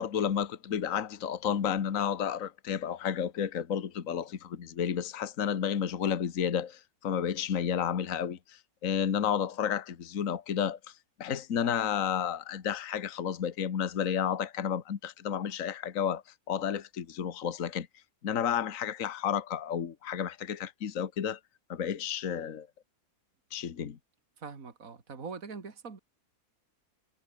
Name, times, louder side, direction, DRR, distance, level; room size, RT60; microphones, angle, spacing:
voice 1, 0.0-10.8 11.2-17.9 18.2-21.4 21.7-22.7 23.5-24.0, left 8 dB, 60° left, 1.6 m, -31 dB
voice 2, 24.4-26.0, right 5 dB, 60° right, 2.9 m, -42 dB
omnidirectional pair, 1.6 m